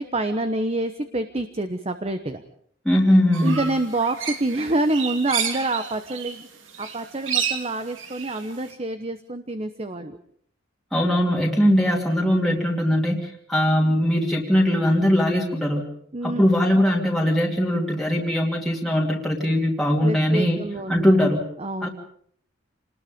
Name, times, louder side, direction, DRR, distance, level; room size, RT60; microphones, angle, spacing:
voice 1, 0.0-2.4 3.4-6.5 6.8-10.2 16.1-16.4 20.0-21.1 21.6-21.9, right 2 dB, 30° right, 9 dB, 1.1 m, -27 dB
voice 2, 2.8-3.6 10.9-15.9 16.2-20.6 20.9-21.5 21.8-21.9, equal, ahead, -3 dB, 2.6 m, -20 dB
sound 1, 3.3-6.4 6.7-8.7, right 7 dB, 85° right, 2.8 m, -30 dB
27.5 x 20.0 x 5.2 m, 0.63 s
head